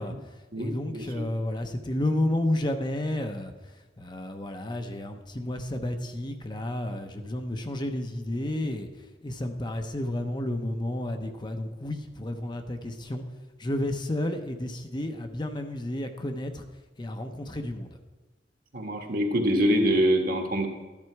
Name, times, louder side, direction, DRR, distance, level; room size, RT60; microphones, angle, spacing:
voice 1, 0.0-13.2 13.6-16.6 17.0-18.0, left 1 dB, 25° left, 6 dB, 0.8 m, -31 dB
voice 2, 0.5-1.2 18.7-20.7, equal, 55° right, 3 dB, 1.7 m, -25 dB
13.5 x 10.5 x 4.7 m, 1.2 s
head